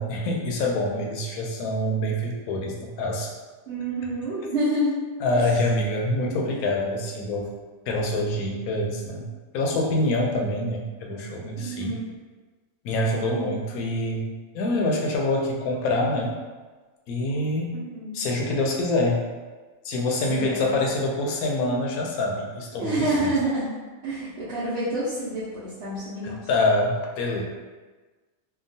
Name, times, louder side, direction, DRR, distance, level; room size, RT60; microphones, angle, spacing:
voice 1, 0.0-3.3 5.2-7.5 7.9-9.3 9.5-12.0 12.8-16.4 17.1-17.7 18.1-19.2 19.8-23.1 26.2-27.4, left 1 dB, 80° left, 0 dB, 1.0 m, -25 dB
voice 2, 3.7-5.0 5.3-5.4 11.6-12.0 17.9-18.2 20.3-20.8 22.8-23.7 24.0-26.4, right 1 dB, 60° right, -10 dB, 0.8 m, -28 dB
2.8 x 2.3 x 2.6 m, 1.3 s
omnidirectional pair, 1.5 m